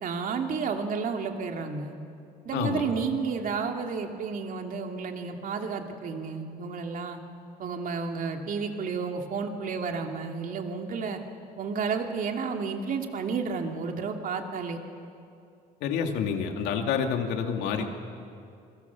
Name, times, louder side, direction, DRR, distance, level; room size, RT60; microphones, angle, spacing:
voice 1, 0.0-2.0 2.4-7.2 7.6-11.2 11.6-14.8 17.8-17.9, right 5 dB, 55° right, 4 dB, 2.7 m, -31 dB
voice 2, 15.8-17.8, left 7 dB, 85° left, 4 dB, 2.6 m, -28 dB
28.5 x 23.0 x 7.2 m, 2.5 s
cardioid pair, 110°, 17 cm